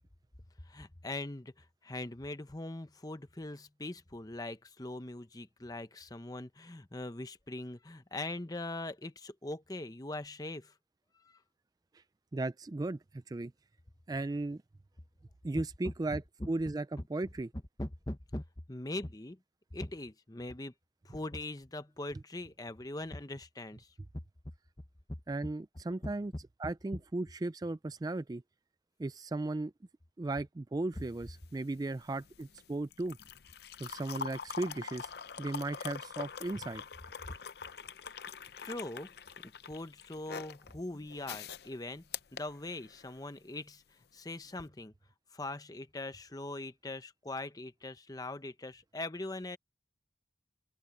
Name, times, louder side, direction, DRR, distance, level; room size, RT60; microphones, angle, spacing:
voice 1, 0.6-10.7 11.2-11.4 15.8-15.9 16.4-16.5 17.8-19.4 19.7-20.7 21.0-23.9 37.2-37.3 38.6-39.1 39.6-43.8 44.1-44.9 45.3-49.6, left 2 dB, 20° left, 0.8 m, -41 dB
voice 2, 12.3-13.5 14.1-14.6 15.4-16.2 16.5-17.5 25.3-26.3 26.6-28.4 29.0-29.7 30.2-33.2 33.8-35.1 35.4-36.8, right 2 dB, 20° right, 0.3 m, -36 dB
sound 1, 30.9-43.2 44.5-44.7, left 6 dB, 60° left, 0.7 m, -45 dB
open air
head